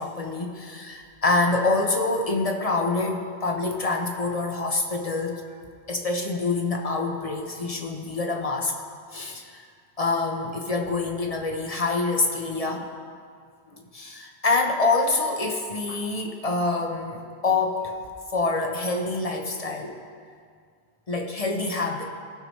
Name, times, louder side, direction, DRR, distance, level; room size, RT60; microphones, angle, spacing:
voice 1, 0.0-5.4 5.9-8.7 9.1-9.7 10.0-12.9 13.8-18.0 18.3-20.0 21.1-22.0, left 3 dB, 35° left, 2 dB, 0.7 m, -26 dB
16.5 x 5.7 x 3.1 m, 2.1 s
omnidirectional pair, 1.2 m